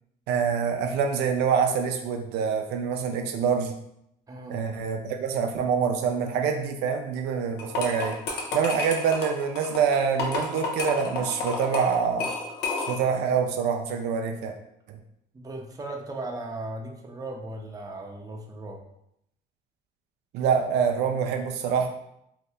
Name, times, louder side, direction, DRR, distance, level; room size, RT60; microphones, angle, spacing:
voice 1, 0.3-3.7 4.5-8.2 8.5-12.3 12.9-14.5 14.9-15.0 20.3-21.9, right 6 dB, 85° right, 4 dB, 0.4 m, -25 dB
voice 2, 4.3-4.6 15.3-18.8, right 2 dB, 20° right, 1 dB, 0.6 m, -37 dB
sound 1, 7.6-13.2, left 3 dB, 80° left, 0.7 m, -31 dB
2.7 x 2.6 x 3.3 m, 0.77 s
cardioid pair, 110°, 17 cm